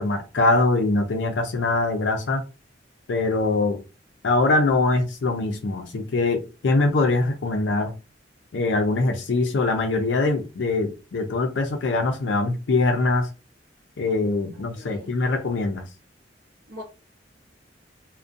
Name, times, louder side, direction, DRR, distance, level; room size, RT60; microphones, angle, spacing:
voice 1, 0.0-2.4 3.1-3.8 4.2-7.9 8.5-13.3 14.0-15.8, left 2 dB, 70° left, 0.4 m, -23 dB
voice 2, 14.5-15.2 16.7-16.8, left 1 dB, 60° right, 0.6 m, -42 dB
2.5 x 2.1 x 2.5 m
head